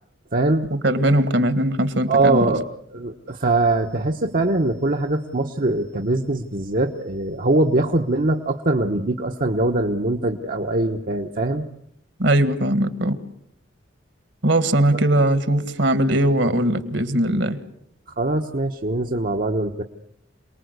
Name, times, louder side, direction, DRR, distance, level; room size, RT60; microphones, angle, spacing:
voice 1, 0.3-0.7 2.1-2.6 2.9-11.6 14.9-15.0 18.2-19.8, right 2 dB, 45° right, 3 dB, 1.1 m, -22 dB
voice 2, 0.8-2.5 12.2-13.2 14.4-17.6, right 1 dB, 65° right, 11 dB, 1.8 m, -20 dB
27.5 x 20.0 x 8.1 m, 0.73 s
head